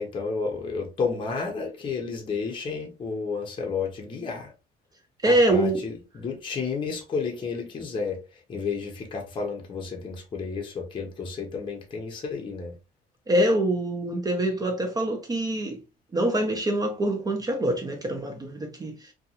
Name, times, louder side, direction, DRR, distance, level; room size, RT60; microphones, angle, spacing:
voice 1, 0.0-4.5 5.3-8.2 8.5-12.7, left 5 dB, 30° left, 0.7 m, -31 dB
voice 2, 5.2-5.8 13.3-15.8 16.1-19.1, right 1 dB, 20° right, 0.5 m, -24 dB
2.5 x 2.3 x 2.8 m
cardioid pair, 110°, 17 cm